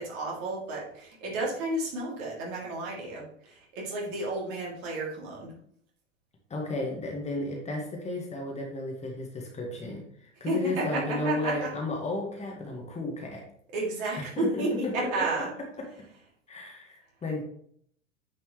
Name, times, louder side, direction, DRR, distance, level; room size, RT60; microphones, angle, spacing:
voice 1, 0.0-5.5 10.4-11.7 13.7-15.5, right 2 dB, 50° right, -3 dB, 3.1 m, -32 dB
voice 2, 6.5-13.4 14.2-14.6 15.0-15.3 16.5-17.4, left 2 dB, 15° left, 0 dB, 1.7 m, -33 dB
9.2 x 5.5 x 3.2 m, 0.64 s
figure-of-eight pair, 90°, 38 cm